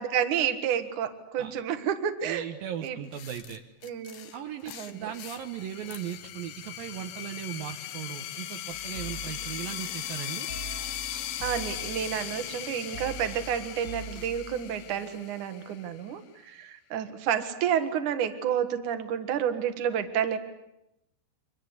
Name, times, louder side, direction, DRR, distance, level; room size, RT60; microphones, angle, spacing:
voice 1, 0.0-2.5 2.8-3.0 3.8-4.3 4.7-5.1 11.4-20.4, right 9 dB, 60° right, 9 dB, 2.2 m, -30 dB
voice 2, 2.2-3.6 4.3-10.5, right 10 dB, 75° right, 4 dB, 2.1 m, -38 dB
sound 1, 2.8-6.3, left 10 dB, 65° left, 2.7 m, -47 dB
sound 2, 4.9-16.1, left 12 dB, 80° left, 3.9 m, -38 dB
sound 3, 8.7-15.2, right 2 dB, 30° left, 2.1 m, -44 dB
29.0 x 24.5 x 8.4 m, 0.86 s
omnidirectional pair, 5.7 m